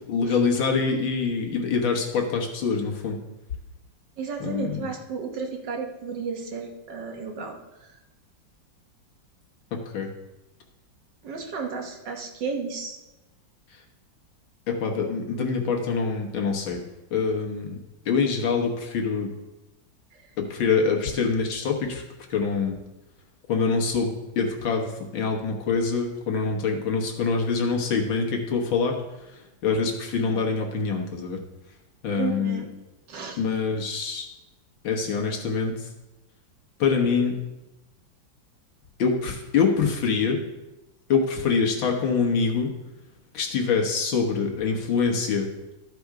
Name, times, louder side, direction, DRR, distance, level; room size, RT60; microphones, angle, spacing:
voice 1, 0.1-3.2 4.4-4.8 9.7-10.1 14.7-16.8 17.1-17.8 18.1-19.3 20.4-22.0 22.3-22.8 23.5-29.0 29.6-31.4 32.0-32.6 33.4-34.3 34.8-35.9 36.8-37.4 39.0-40.4 41.1-42.7 43.3-45.5, left 5 dB, 85° left, 1 dB, 2.1 m, -25 dB
voice 2, 4.2-7.9 11.2-13.0 20.1-20.3 32.2-32.7 33.1-33.4, right 5 dB, 65° right, 2 dB, 1.8 m, -33 dB
13.0 x 5.2 x 4.8 m, 1.0 s
omnidirectional pair, 2.1 m